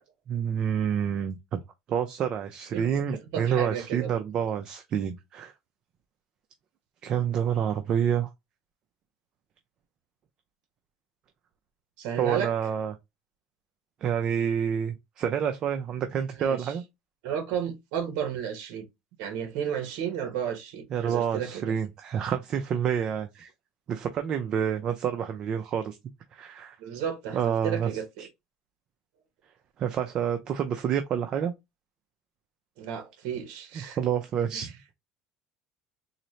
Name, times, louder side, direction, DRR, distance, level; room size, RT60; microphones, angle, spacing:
voice 1, 0.3-1.6 1.9-5.5 7.0-8.3 12.2-12.9 14.0-16.8 20.9-23.5 23.9-26.0 26.3-26.8 27.3-27.9 28.2-28.3 29.8-31.5 33.8-34.7, right 8 dB, 40° right, 0.4 m, -28 dB
voice 2, 2.7-4.1 12.0-12.5 16.4-16.8 17.2-18.9 19.2-21.8 26.8-28.3 32.8-34.0 34.5-34.7, right 8 dB, 70° right, 0.9 m, -33 dB
4.0 x 2.0 x 3.0 m
cardioid pair, 135°, 2 cm